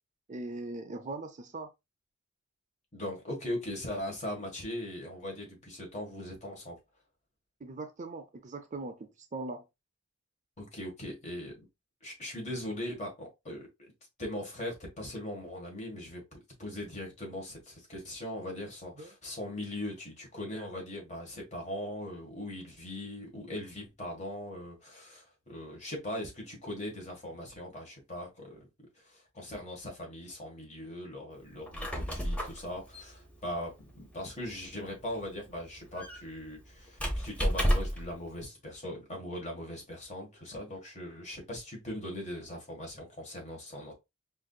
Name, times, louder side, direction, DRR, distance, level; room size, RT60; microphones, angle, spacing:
voice 1, 0.3-1.7 7.6-9.6 19.0-19.1, right 2 dB, 35° right, 0.5 m, -40 dB
voice 2, 2.9-6.8 10.6-11.5 12.0-13.7 14.2-28.6 29.0-43.9, left 1 dB, 35° left, 1.5 m, -40 dB
Squeak, 31.5-38.1, equal, 5° left, 0.8 m, -33 dB
4.8 x 2.7 x 2.3 m
head